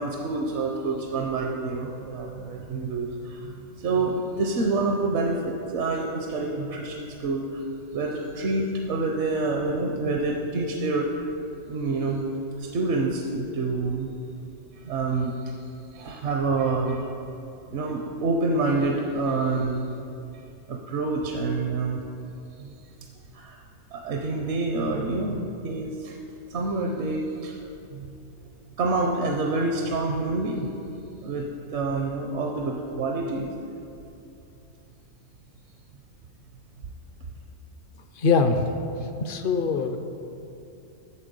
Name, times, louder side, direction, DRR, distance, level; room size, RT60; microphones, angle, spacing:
voice 1, 0.0-7.7 7.9-11.2 11.7-12.2 12.6-14.2 14.7-15.6 15.9-17.1 17.7-20.0 20.7-22.0 22.6-22.7 23.3-23.6 23.9-26.2 26.5-27.6 27.9-28.3 28.8-30.7 31.2-33.6, right 3 dB, 65° right, 2 dB, 0.9 m, -27 dB
voice 2, 38.2-38.7 39.2-40.0, left 4 dB, 55° left, 7 dB, 0.6 m, -22 dB
8.7 x 6.8 x 5.3 m, 2.7 s
omnidirectional pair, 1.3 m